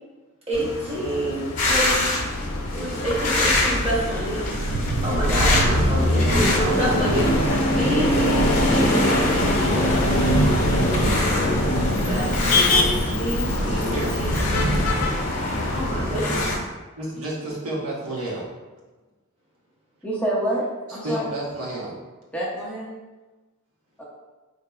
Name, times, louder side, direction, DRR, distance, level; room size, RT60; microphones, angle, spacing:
Motor vehicle (road), 0.5-16.2, left 3 dB, 80° left, 0.6 m, -29 dB
voice 1, 0.5-2.1 2.7-4.5 5.0-7.5 7.7-9.2 9.7-10.1 12.0-12.3 13.2-14.5 15.7-16.5, right 1 dB, 30° right, -6 dB, 1.0 m, -27 dB
sound 1, 1.6-16.6, left 1 dB, 40° left, 0.7 m, -23 dB
sound 2, 4.4-15.1, right 1 dB, 65° right, 0.4 m, -26 dB
voice 2, 13.9-14.2 17.0-18.4 21.0-21.9, right 1 dB, 90° right, -5 dB, 1.0 m, -30 dB
voice 3, 20.0-21.2 22.3-22.9 24.0-24.1, right 1 dB, 5° left, -5 dB, 0.5 m, -27 dB
4.1 x 2.8 x 2.3 m, 1.2 s
head